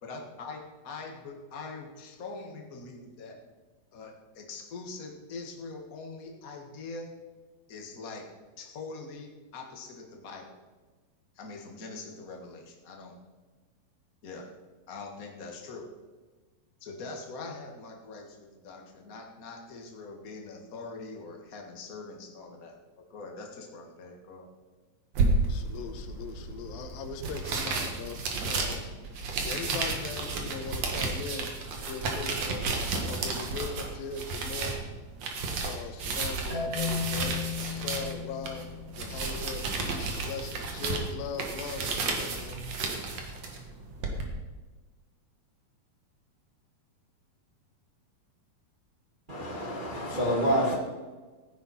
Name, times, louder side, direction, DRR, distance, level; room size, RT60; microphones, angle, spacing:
voice 1, 0.0-3.4 3.9-7.1 7.7-8.3 8.6-10.6 11.3-13.2 14.2-14.5 14.9-15.9 16.8-22.8 23.1-24.5, left 3 dB, 45° left, 1.2 m, -43 dB
sound 1, 25.1-44.2, right 3 dB, 55° right, 2.3 m, -32 dB
voice 2, 25.5-34.8 35.6-38.7 39.0-42.6 43.2-43.4, left 5 dB, 80° left, 2.7 m, -40 dB
Marimba xylophone, 36.5-39.5, left 7 dB, 20° right, 4.3 m, -35 dB
voice 3, 49.3-50.8, equal, 75° right, 0.4 m, -27 dB
15.5 x 10.0 x 4.3 m
omnidirectional pair, 4.2 m